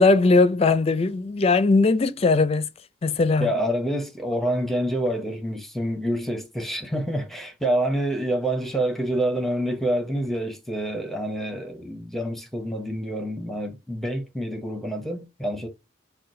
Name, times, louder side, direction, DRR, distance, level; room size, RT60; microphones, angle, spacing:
voice 1, 0.0-2.7 3.0-3.5, left 3 dB, 35° left, 0.4 m, -19 dB
voice 2, 3.4-15.7, right 1 dB, ahead, 0.7 m, -27 dB
5.7 x 2.2 x 2.6 m
head